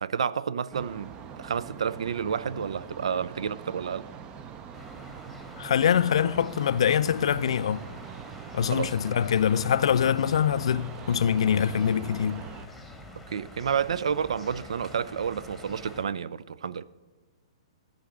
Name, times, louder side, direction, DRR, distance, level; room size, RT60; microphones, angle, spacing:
voice 1, 0.0-4.0 8.6-9.0 13.3-16.8, right 7 dB, 75° right, 0.4 m, -30 dB
sound 1, 0.7-12.7, right 7 dB, 25° right, 0.6 m, -43 dB
sound 2, 4.7-16.0, left 1 dB, ahead, 1.2 m, -47 dB
voice 2, 5.6-7.9 8.5-12.4, left 8 dB, 70° left, 0.4 m, -24 dB
11.5 x 3.8 x 7.2 m
hypercardioid pair, 125°, 3 cm